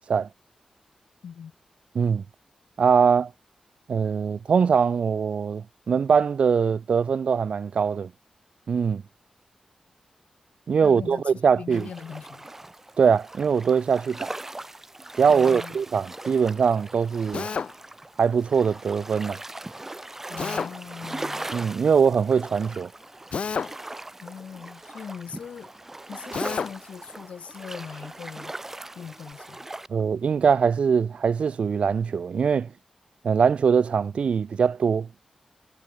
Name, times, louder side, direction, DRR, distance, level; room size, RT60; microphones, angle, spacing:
voice 1, 2.8-3.3 3.9-8.1 8.7-9.0 10.7-11.9 13.0-14.3 15.2-17.5 18.2-19.4 21.5-22.9 29.9-32.7 33.2-35.1, right 6 dB, 65° right, 0.6 m, -22 dB
voice 2, 10.8-12.5 15.3-15.8 20.3-21.5 24.2-25.7 26.1-28.5 28.9-29.7, left 7 dB, 85° left, 2.2 m, -40 dB
sound 1, 11.7-29.9, right 2 dB, 15° right, 6.4 m, -39 dB
Drill, 17.3-17.7 20.4-20.7 23.3-23.8 26.3-26.7, left 6 dB, 60° left, 1.4 m, -29 dB
wide cardioid pair, 125°, 2 cm